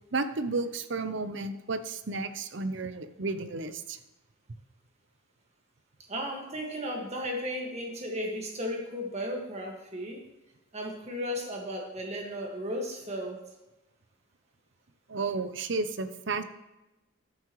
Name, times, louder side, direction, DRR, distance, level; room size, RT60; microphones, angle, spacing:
voice 1, 0.1-4.0 15.1-16.4, right 3 dB, 60° right, 11 dB, 0.7 m, -32 dB
voice 2, 6.1-10.2 10.7-13.4, equal, 30° right, 0 dB, 1.8 m, -35 dB
12.0 x 9.5 x 3.1 m, 0.99 s
head